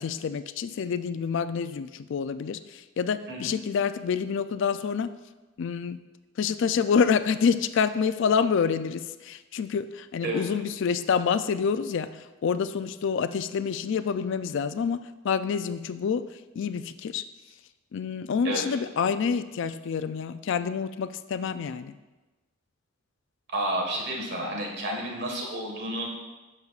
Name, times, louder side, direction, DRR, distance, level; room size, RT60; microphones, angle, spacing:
voice 1, 0.0-5.1 5.6-6.0 6.4-16.2 16.6-17.2 17.9-21.9, left 6 dB, 60° left, 12 dB, 0.3 m, -27 dB
voice 2, 23.5-26.1, right 1 dB, 55° right, 0 dB, 1.5 m, -30 dB
10.5 x 6.7 x 2.4 m, 1.1 s
head